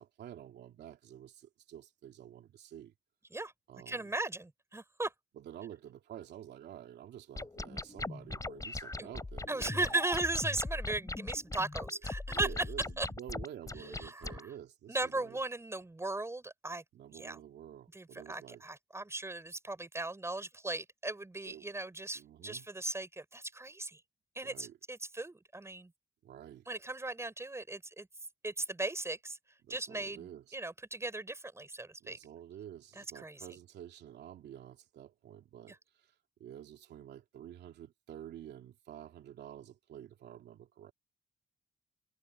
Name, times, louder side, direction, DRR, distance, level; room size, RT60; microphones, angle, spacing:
voice 1, 0.0-2.9 3.7-4.1 5.3-10.0 12.3-15.4 16.9-18.6 21.4-21.7 22.1-22.7 24.4-24.8 26.2-26.7 29.6-30.5 32.0-40.9, right 10 dB, 80° right, 2.9 m, -49 dB
voice 2, 3.9-5.1 9.0-9.1 9.5-12.5 13.0-13.1 14.0-14.4 14.9-16.8 17.1-17.4 17.9-24.0 24.4-25.9 26.7-28.1 28.4-29.4 29.7-30.3 30.5-32.2 33.0-33.4, right 2 dB, 15° right, 5.7 m, -37 dB
sound 1, 7.4-14.4, left 2 dB, 20° left, 5.1 m, -40 dB
cardioid pair, 90°, 17 cm